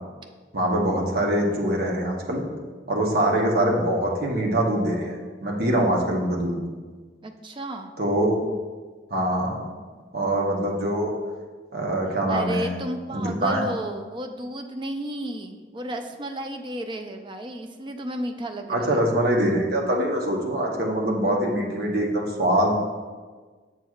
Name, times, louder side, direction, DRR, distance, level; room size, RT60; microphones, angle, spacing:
voice 1, 0.5-2.4 2.9-6.6 8.0-8.3 9.1-9.6 10.1-11.1 11.7-12.8 13.1-13.6 18.7-22.7, right 1 dB, 60° right, -1 dB, 1.0 m, -23 dB
voice 2, 7.2-7.9 12.3-19.0, right 1 dB, 25° right, 5 dB, 0.4 m, -33 dB
7.9 x 6.1 x 2.4 m, 1.4 s
head